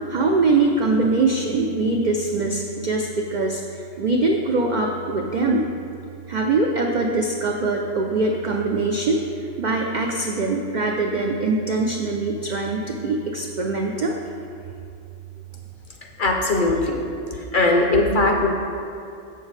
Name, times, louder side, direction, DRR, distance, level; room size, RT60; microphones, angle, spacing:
voice 1, 0.1-5.7 6.3-9.2 9.6-14.2, right 3 dB, 80° right, 1 dB, 0.4 m, -22 dB
voice 2, 16.2-17.0 17.3-18.5, left 2 dB, 50° left, 1 dB, 0.7 m, -20 dB
7.2 x 6.8 x 3.2 m, 2.5 s
omnidirectional pair, 1.3 m